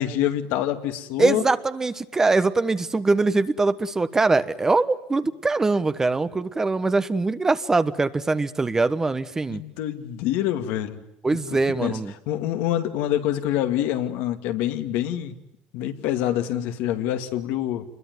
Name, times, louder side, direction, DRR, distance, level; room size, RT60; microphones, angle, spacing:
voice 1, 0.0-1.4 9.5-11.0 11.5-12.0 12.3-15.3 15.7-17.9, left 12 dB, 75° left, 7 dB, 2.3 m, -26 dB
voice 2, 1.2-9.6 11.2-12.1, right 3 dB, 15° right, 12 dB, 1.1 m, -22 dB
27.5 x 21.5 x 9.5 m, 0.82 s
cardioid pair, 140°, 3 cm